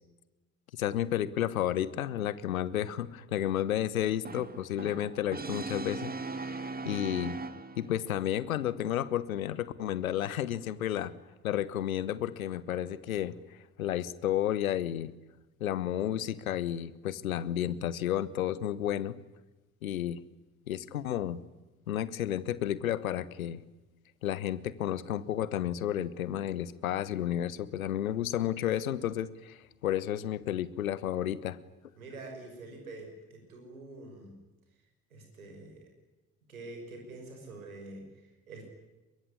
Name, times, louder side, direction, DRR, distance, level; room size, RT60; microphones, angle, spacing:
voice 1, 0.7-7.3 7.8-11.1 11.4-13.3 13.8-15.1 15.6-19.2 19.8-20.2 20.7-21.4 21.9-23.6 24.2-31.6, left 11 dB, 75° left, 18 dB, 1.2 m, -32 dB
Brass instrument, 4.2-8.1, right 3 dB, 20° right, 2.0 m, -39 dB
voice 2, 32.0-34.4 35.1-35.9 36.5-38.6, right 2 dB, 80° right, 3 dB, 6.0 m, -46 dB
24.0 x 23.0 x 9.9 m, 1.1 s
figure-of-eight pair, 50°, 41 cm